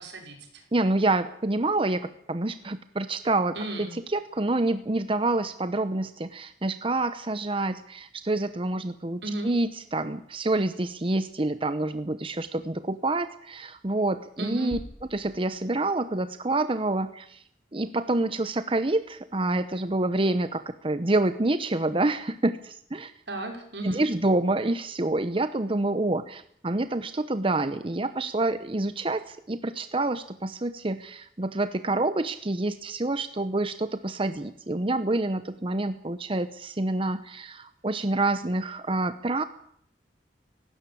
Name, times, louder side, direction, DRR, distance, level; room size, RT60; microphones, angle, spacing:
voice 1, 0.0-0.6 3.6-3.9 9.2-9.5 14.4-14.8 23.3-24.1, right 1 dB, 75° right, 3 dB, 5.6 m, -34 dB
voice 2, 0.7-14.8 15.1-17.4 17.7-23.1 23.8-39.4, right 2 dB, 30° right, 11 dB, 0.8 m, -27 dB
sound 1, 14.7-16.5, left 1 dB, 35° left, 1.3 m, -46 dB
19.0 x 16.5 x 8.7 m, 0.67 s
head